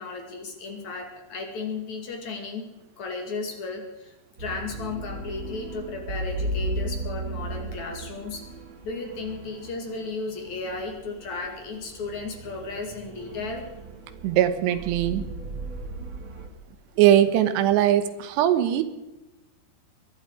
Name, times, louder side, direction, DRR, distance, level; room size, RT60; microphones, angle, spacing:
voice 1, 0.0-2.7 3.0-8.5 8.8-13.7, left 4 dB, 50° left, 3 dB, 3.3 m, -34 dB
sound 1, 4.4-16.5, right 2 dB, 35° right, 2.3 m, -36 dB
voice 2, 14.2-15.3 17.0-18.8, right 11 dB, 85° right, 11 dB, 3.3 m, -20 dB
23.5 x 11.5 x 4.9 m, 0.99 s
omnidirectional pair, 4.8 m